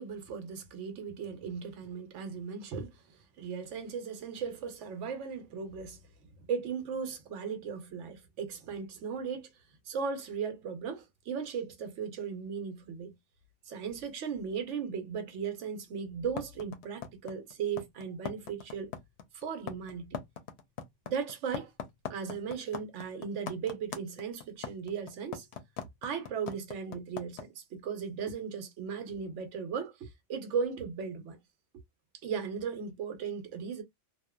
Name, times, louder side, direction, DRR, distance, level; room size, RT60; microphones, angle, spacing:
voice 1, 0.0-2.9 3.4-6.0 6.5-9.5 9.9-13.1 13.7-18.9 19.3-20.2 21.1-21.7 22.1-25.5 26.0-31.4 32.2-33.8, right 6 dB, 75° right, 1.0 m, -37 dB
sound 1, 16.4-27.4, left 7 dB, 70° left, 0.8 m, -40 dB
2.8 x 2.1 x 2.2 m
omnidirectional pair, 1.2 m